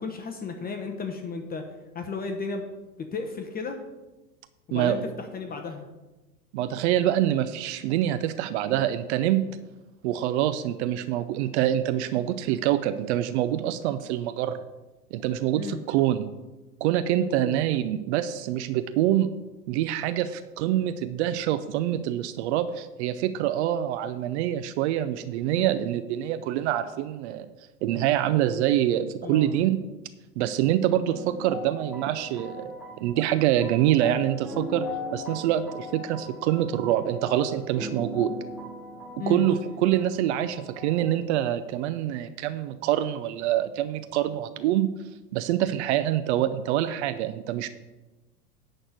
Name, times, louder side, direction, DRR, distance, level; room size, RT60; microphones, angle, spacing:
voice 1, 0.0-1.6 1.9-2.6 3.0-3.8 4.7-5.9 15.6-15.8 17.3-17.6 25.6-25.7 29.2-29.5 39.2-39.5, left 4 dB, 20° left, 5 dB, 1.0 m, -34 dB
voice 2, 4.7-5.0 6.5-9.4 10.0-14.6 15.1-16.3 16.8-19.3 19.7-27.5 27.8-29.8 30.4-34.8 35.1-38.3 39.3-44.9 45.3-47.7, right 12 dB, 45° right, 11 dB, 0.7 m, -25 dB
sound 1, 31.1-41.1, left 2 dB, ahead, 1.4 m, -40 dB
11.0 x 4.3 x 7.9 m, 1.1 s
hypercardioid pair, 100°, 47 cm